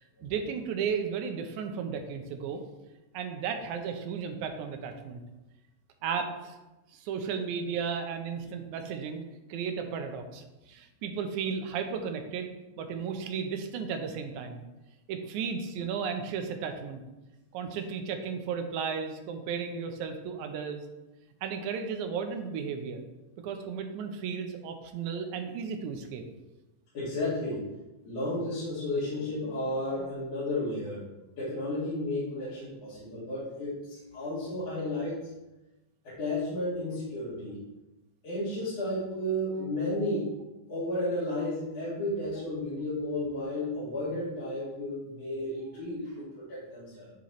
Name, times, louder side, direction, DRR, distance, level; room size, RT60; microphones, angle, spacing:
voice 1, 0.0-2.6 3.1-5.2 6.0-6.6 6.9-9.2 9.5-12.5 12.8-14.6 15.1-17.0 17.5-20.8 21.4-23.0 23.4-26.2, right 6 dB, 85° right, 5 dB, 2.2 m, -34 dB
voice 2, 26.9-27.6 28.0-31.0 31.4-35.3 36.0-37.6 38.2-40.3 40.7-47.1, left 1 dB, 60° left, -11 dB, 3.1 m, -33 dB
9.6 x 4.3 x 3.1 m, 1.0 s
omnidirectional pair, 3.3 m